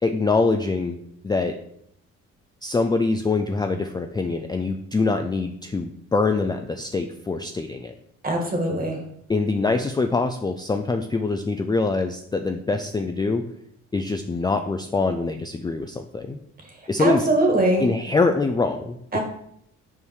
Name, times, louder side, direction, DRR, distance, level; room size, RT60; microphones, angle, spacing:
voice 1, 0.0-1.0 1.2-1.6 2.6-7.9 9.3-13.4 13.9-16.4 16.9-17.3 17.8-19.2, left 3 dB, 15° left, 6 dB, 0.4 m, -24 dB
voice 2, 8.2-9.0 17.0-17.8 19.1-19.2, right 1 dB, 30° right, 2 dB, 1.9 m, -21 dB
5.5 x 4.6 x 4.7 m, 0.71 s
cardioid pair, 90°, 30 cm